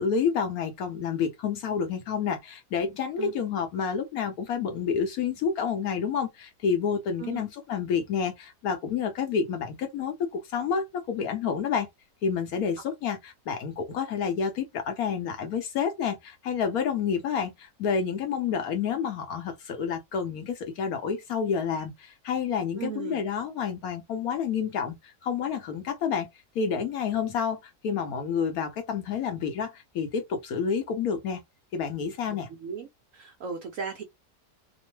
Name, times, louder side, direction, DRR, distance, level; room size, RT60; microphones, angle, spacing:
voice 1, 0.0-11.9 12.2-26.3 26.5-31.4 31.7-32.5, left 6 dB, 65° left, 1.0 m, -29 dB
voice 2, 22.8-23.2 32.3-32.9 33.1-34.0, right 6 dB, 70° right, 0.8 m, -36 dB
2.9 x 2.0 x 3.0 m
omnidirectional pair, 1.8 m